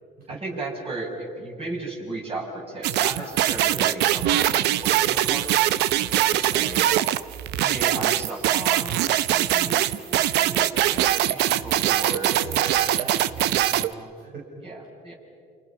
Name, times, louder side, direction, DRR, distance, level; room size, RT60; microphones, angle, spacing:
voice 1, 0.3-5.5 6.1-7.0 7.6-13.4 14.6-15.1, right 2 dB, 35° right, -1 dB, 6.6 m, -35 dB
sound 1, 2.8-13.9, right 13 dB, 80° right, 0.8 m, -22 dB
voice 2, 12.4-14.7, right 2 dB, 60° right, -2 dB, 5.3 m, -41 dB
30.0 x 27.5 x 5.9 m, 2.4 s
cardioid pair, 110°, 17 cm